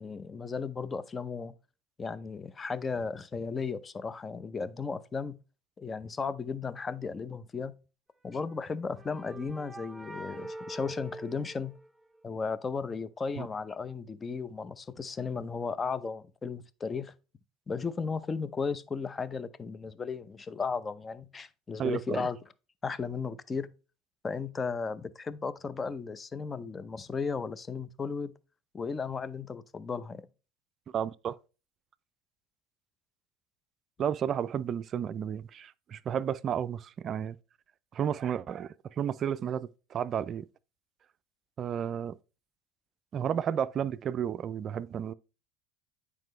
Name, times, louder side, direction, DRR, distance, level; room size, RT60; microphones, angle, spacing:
voice 1, 0.0-1.5 2.0-5.4 5.8-7.8 8.2-11.7 12.2-17.1 17.7-22.4 22.8-23.7 24.2-28.3 28.7-30.3, left 5 dB, 25° left, 0.7 m, -35 dB
sound 1, 8.4-12.3, right 1 dB, 5° right, 0.9 m, -45 dB
voice 2, 21.8-22.3 30.9-31.4 34.0-37.4 37.9-40.5 41.6-42.2 43.1-45.1, right 8 dB, 40° right, 0.4 m, -32 dB
9.2 x 4.8 x 3.2 m
hypercardioid pair, 75°, 0 cm